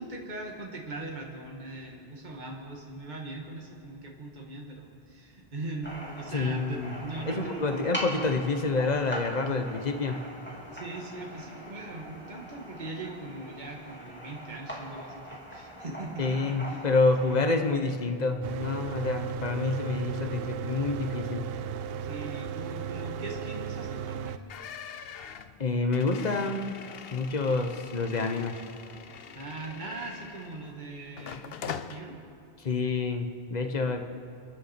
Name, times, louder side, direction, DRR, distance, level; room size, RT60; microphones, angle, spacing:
voice 1, 0.0-7.9 10.7-16.9 17.2-17.5 21.9-24.4 29.3-32.2, right 2 dB, 45° right, 0 dB, 1.8 m, -40 dB
sound 1, 5.8-17.8, equal, 10° left, 2.7 m, -41 dB
voice 2, 6.3-7.0 7.3-10.3 16.2-21.5 25.6-26.8 27.1-28.5 32.6-34.1, left 3 dB, 45° left, 5 dB, 1.1 m, -28 dB
Mechanical fan, 18.4-24.4, right 7 dB, 70° right, 0.8 m, -35 dB
sound 2, 24.5-30.7 31.2-32.0, left 7 dB, 70° left, 0.9 m, -43 dB
29.5 x 10.0 x 4.4 m, 2.4 s
omnidirectional pair, 1.1 m